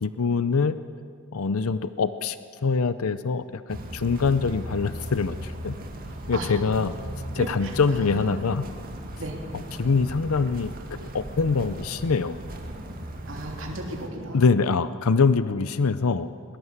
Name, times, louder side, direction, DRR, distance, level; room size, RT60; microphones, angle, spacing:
voice 1, 0.0-0.8 1.3-2.4 2.6-5.7 6.3-6.9 7.3-8.6 9.7-12.4 14.3-16.3, left 4 dB, 80° left, 13 dB, 0.6 m, -24 dB
sound 1, 3.7-14.1, right 1 dB, 40° right, 2.2 m, -37 dB
voice 2, 7.4-8.4 9.2-9.4 13.3-14.4, right 1 dB, 60° right, 0 dB, 3.3 m, -35 dB
20.5 x 20.0 x 8.1 m, 2.3 s
head